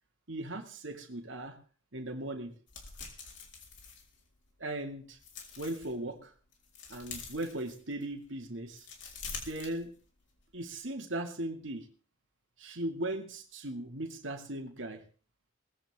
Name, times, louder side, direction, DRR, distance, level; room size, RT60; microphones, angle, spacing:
voice 1, 0.3-1.6 1.9-2.5 4.6-5.2 5.6-6.3 6.9-8.9 9.4-9.9 10.5-11.9 12.6-15.0, right 1 dB, 65° right, 4 dB, 2.4 m, -38 dB
sound 1, 2.7-4.6 5.0-5.9 6.4-8.1 8.6-10.3 10.6-10.8, left 5 dB, 60° left, 4.1 m, -46 dB
19.5 x 15.0 x 3.7 m, 0.42 s
head